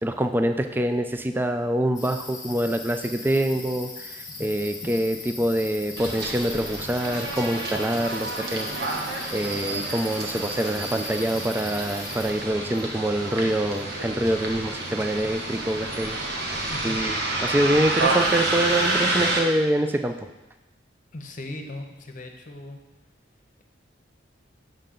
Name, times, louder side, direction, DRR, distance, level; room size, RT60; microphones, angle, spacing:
voice 1, 0.0-8.7 9.3-16.2 16.8-20.1, right 1 dB, 10° right, 7 dB, 0.4 m, -25 dB
sound 1, 1.9-12.3, left 3 dB, 20° left, 1.4 m, -39 dB
Bus, 6.0-19.4, right 2 dB, 60° right, 1.2 m, -29 dB
sound 2, 7.6-19.4, right 1 dB, 85° right, 1.5 m, -43 dB
voice 2, 21.1-22.8, left 2 dB, 45° left, 4 dB, 0.9 m, -38 dB
7.2 x 6.6 x 3.8 m, 1.0 s
head